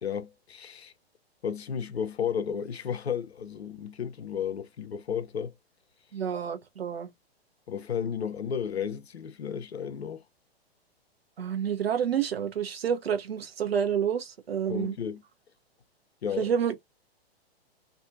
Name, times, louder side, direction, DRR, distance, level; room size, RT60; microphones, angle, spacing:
voice 1, 0.0-0.9 1.4-5.5 7.7-10.2 14.7-15.2 16.2-16.5, left 7 dB, 80° left, 0.6 m, -33 dB
voice 2, 6.1-7.1 11.4-15.0 16.4-16.8, right 8 dB, 70° right, 0.9 m, -29 dB
2.6 x 2.4 x 2.7 m
figure-of-eight pair, 110°, 32 cm